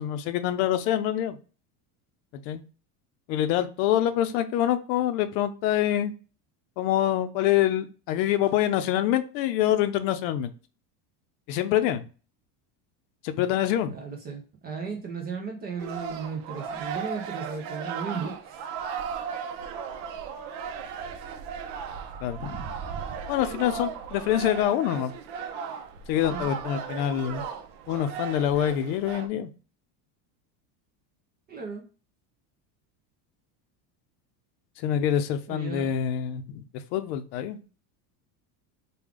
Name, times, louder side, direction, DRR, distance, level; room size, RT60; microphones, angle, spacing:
voice 1, 0.0-1.4 2.3-2.6 3.3-6.1 6.8-10.5 11.5-12.1 13.2-13.9 22.2-22.6 23.3-25.1 26.1-27.4 27.9-29.5 34.8-36.6 36.9-37.6, left 11 dB, 80° left, 10 dB, 0.7 m, -25 dB
voice 2, 13.9-18.7 26.3-26.5 31.5-31.8 35.5-35.9, right 5 dB, 25° right, 1 dB, 0.3 m, -35 dB
sound 1, 15.8-29.3, right 7 dB, 65° right, 0.7 m, -36 dB
3.4 x 2.3 x 3.5 m, 0.35 s
cardioid pair, 145°, 49 cm